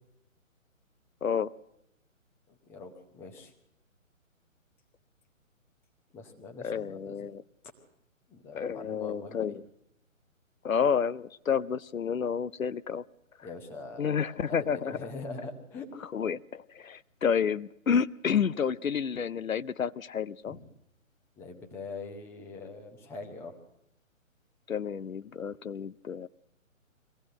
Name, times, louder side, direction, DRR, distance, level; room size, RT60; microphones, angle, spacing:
voice 1, 1.2-1.5 6.6-7.4 8.5-9.6 10.6-13.0 14.0-15.0 16.1-20.6 24.7-26.3, left 7 dB, 80° left, 18 dB, 0.7 m, -30 dB
voice 2, 2.5-3.5 6.1-7.3 8.3-9.6 13.4-14.1 14.5-15.9 20.5-20.6 21.4-23.6, left 3 dB, 5° left, 3 dB, 0.8 m, -43 dB
22.5 x 16.0 x 7.7 m, 0.80 s
figure-of-eight pair, 140°, 40 cm